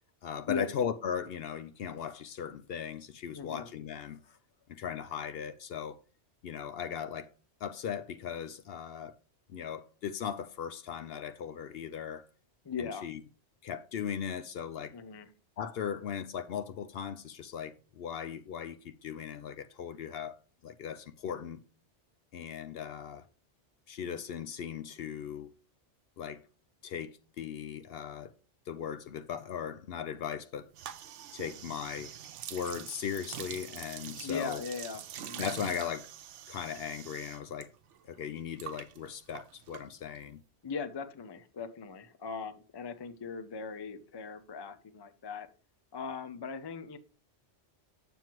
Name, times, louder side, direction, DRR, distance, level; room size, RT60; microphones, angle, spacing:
voice 1, 0.2-4.4 4.7-6.0 6.4-7.3 7.6-9.1 9.5-12.3 12.8-13.2 13.6-14.9 15.6-20.4 20.6-21.6 22.3-23.3 23.9-25.5 26.2-26.4 26.8-28.3 28.7-30.7 31.3-32.1 32.5-34.6 35.4-36.1 36.5-37.7 38.0-40.4, left 8 dB, 65° left, 0.7 m, -38 dB
voice 2, 3.3-3.7 12.6-13.1 14.9-15.3 34.2-35.4 40.6-45.5 45.9-47.0, left 5 dB, 35° left, 0.4 m, -39 dB
sound 1, 30.7-37.7 37.9-40.3, right 10 dB, 85° right, 0.9 m, -45 dB
7.5 x 7.0 x 3.0 m
omnidirectional pair, 1.2 m